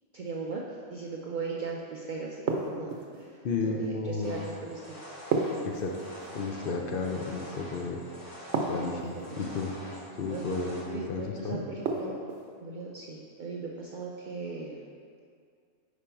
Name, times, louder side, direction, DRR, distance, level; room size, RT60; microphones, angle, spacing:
voice 1, 0.1-0.6 0.9-5.1 9.2-9.4 10.3-10.5 10.9-12.1 12.6-14.8, right 4 dB, 80° right, -2 dB, 0.4 m, -38 dB
sound 1, 2.5-3.2 5.3-6.3 8.5-9.3 11.8-12.5, right 4 dB, 65° right, 0.9 m, -31 dB
voice 2, 3.4-4.4 5.6-6.0 6.3-8.0 8.7-9.7 10.2-11.6, left 4 dB, 60° left, 1 dB, 0.6 m, -32 dB
sound 2, 4.2-10.8, equal, 45° left, 1.5 m, -46 dB
5.0 x 5.0 x 4.4 m, 2.2 s
omnidirectional pair, 1.4 m